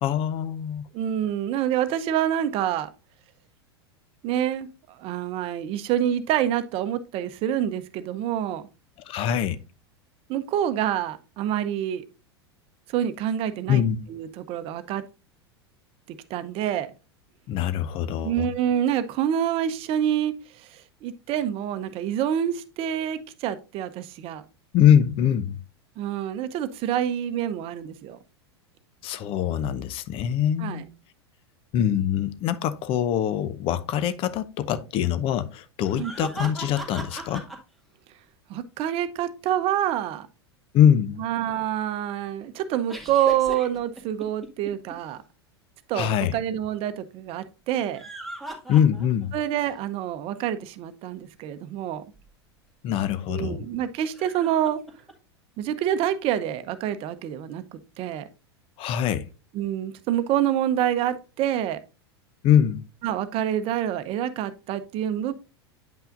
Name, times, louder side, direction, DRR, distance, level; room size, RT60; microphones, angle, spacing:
voice 1, 0.0-0.9 9.1-9.6 13.7-14.0 17.5-18.5 24.7-25.6 29.0-30.9 31.7-37.4 40.7-41.2 45.9-46.4 48.7-49.3 52.8-53.7 58.8-59.3 62.4-62.8, left 9 dB, 40° left, 0.7 m, -23 dB
voice 2, 0.9-2.9 4.2-8.6 10.3-12.0 12.9-13.8 14.1-15.0 16.1-16.9 18.2-24.4 26.0-28.2 30.6-30.8 36.0-36.1 38.5-40.3 41.2-45.2 45.9-48.0 49.3-52.0 53.3-54.8 55.6-58.3 59.5-61.8 63.0-65.3, right 10 dB, 45° right, 0.8 m, -27 dB
sound 1, 35.8-37.6 42.9-44.9 47.8-49.3 49.7-49.8 52.2-52.3 54.1-55.1, right 2 dB, ahead, 2.0 m, -37 dB
9.0 x 5.6 x 2.5 m
hypercardioid pair, 90°, 14 cm